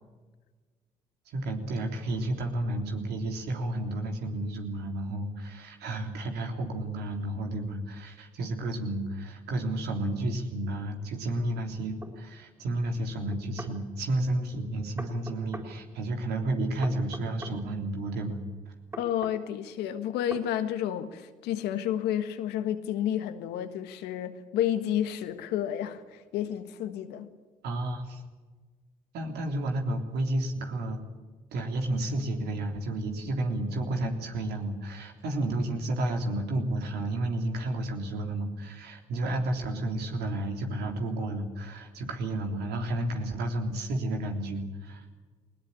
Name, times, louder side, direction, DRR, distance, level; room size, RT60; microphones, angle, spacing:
voice 1, 1.3-18.4 27.6-28.2 29.1-31.0 31.5-45.0, right 1 dB, 75° right, 3 dB, 3.4 m, -31 dB
sound 1, 12.0-12.2 13.3-13.8 15.0-15.7 16.8-17.6 18.9-19.4 20.3-20.5, right 2 dB, 20° right, 4.7 m, -41 dB
voice 2, 19.0-27.3, left 10 dB, 80° left, 9 dB, 1.6 m, -31 dB
20.0 x 19.0 x 8.7 m, 1.4 s
hypercardioid pair, 50°, 17 cm